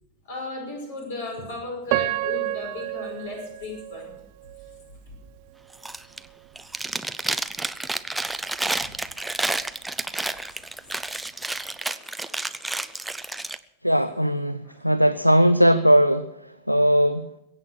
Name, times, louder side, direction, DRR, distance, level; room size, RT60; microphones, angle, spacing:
voice 1, 0.2-4.1 8.8-8.9 11.8-12.9 13.2-13.3 14.6-14.8, left 2 dB, 60° left, 1 dB, 5.4 m, -36 dB
Piano, 1.9-4.9 5.5-5.6 6.2-6.5, right 18 dB, 45° right, 0.6 m, -30 dB
Chewing mastication, 5.7-6.3 6.6-13.6, right 2 dB, 5° right, 0.6 m, -30 dB
voice 2, 13.8-17.3, equal, 90° left, 14 dB, 0.5 m, -19 dB
22.0 x 8.6 x 6.4 m, 0.88 s
figure-of-eight pair, 90°, 0 cm